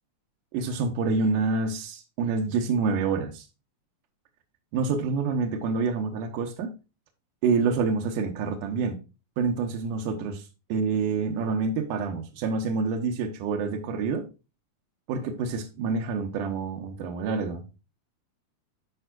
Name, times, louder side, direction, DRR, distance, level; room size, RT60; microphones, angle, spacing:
voice 1, 0.5-3.5 4.7-6.7 7.4-9.0 9.4-14.3 15.1-17.6, right 4 dB, 85° right, 2.5 m, -27 dB
12.5 x 4.5 x 2.4 m
omnidirectional pair, 3.6 m